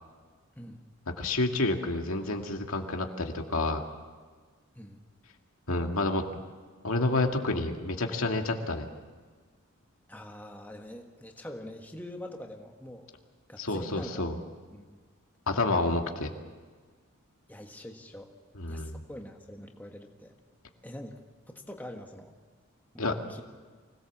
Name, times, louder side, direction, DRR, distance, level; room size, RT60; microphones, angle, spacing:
voice 1, 1.2-3.8 5.7-6.2 6.8-8.9 13.6-14.4 15.5-16.3 18.6-19.0 23.0-23.2, left 2 dB, 80° left, 3 dB, 2.1 m, -29 dB
voice 2, 10.1-13.1 13.5-14.3 14.7-14.8 17.5-18.3 18.7-20.3 20.8-21.2 21.5-22.3 22.9-23.4, left 1 dB, 10° left, 2 dB, 1.4 m, -44 dB
24.5 x 17.5 x 7.3 m, 1.5 s
head